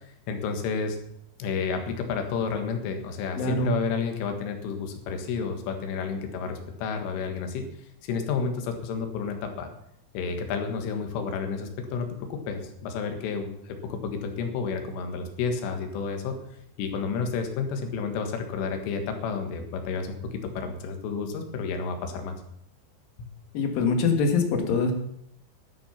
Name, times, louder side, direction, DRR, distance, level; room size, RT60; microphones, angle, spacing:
voice 1, 0.3-1.0 1.4-7.7 8.0-9.7 10.1-16.4 16.8-22.4 23.2-23.3, left 5 dB, 85° left, 5 dB, 4.2 m, -31 dB
voice 2, 3.4-3.7 23.5-24.9, left 4 dB, 60° left, 4 dB, 2.9 m, -24 dB
12.5 x 10.5 x 5.7 m, 0.74 s
omnidirectional pair, 5.6 m